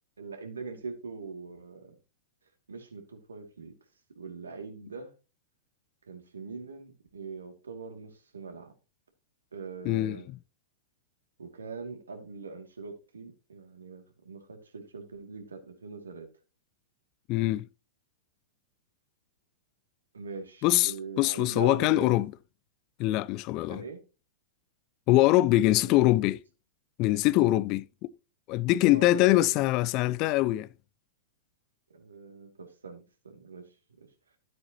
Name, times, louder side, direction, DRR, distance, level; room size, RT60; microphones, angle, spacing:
voice 1, 0.2-1.9 2.7-3.7 4.2-5.1 6.1-8.7 9.5-10.3 11.4-16.3 20.1-22.2 23.7-24.0 25.8-26.0 28.6-29.6 31.9-33.6, right 4 dB, 75° right, 2.5 m, -42 dB
voice 2, 9.8-10.2 17.3-17.7 20.6-22.3 23.0-23.8 25.1-26.4 27.0-28.1 28.5-30.7, left 16 dB, 40° left, 0.4 m, -23 dB
13.0 x 7.7 x 3.0 m
figure-of-eight pair, 100°, 0 cm